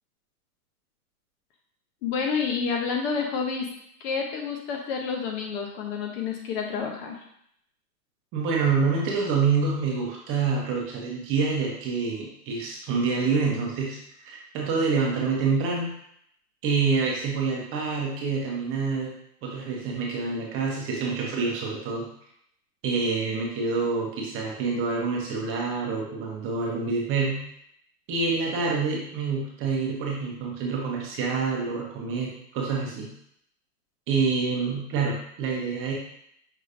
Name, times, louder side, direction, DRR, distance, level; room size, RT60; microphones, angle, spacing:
voice 1, 2.0-3.7 4.0-7.2, left 5 dB, 40° left, 1 dB, 0.7 m, -29 dB
voice 2, 8.3-15.9 16.6-19.1 19.4-22.1 22.8-27.4 28.1-33.1 34.1-35.9, right 4 dB, 25° right, -2 dB, 1.0 m, -27 dB
5.6 x 3.1 x 2.5 m, 0.71 s
hypercardioid pair, 125°, 47 cm